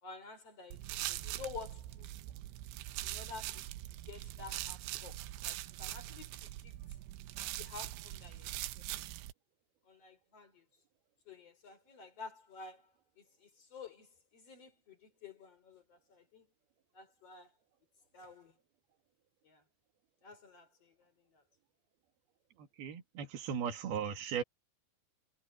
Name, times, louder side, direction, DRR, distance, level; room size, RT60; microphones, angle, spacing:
voice 1, 0.0-2.1 3.0-3.7 4.0-6.8 7.6-8.5 8.8-8.9 9.8-10.7 11.3-16.5 16.9-17.5 18.1-18.6 19.4-19.6 20.2-21.4, left 5 dB, 35° left, 4.5 m, -51 dB
sound 1, 0.7-9.3, right 15 dB, 85° right, 3.2 m, -42 dB
voice 2, 22.8-24.4, right 7 dB, 65° right, 4.2 m, -37 dB
omnidirectional pair, 5.0 m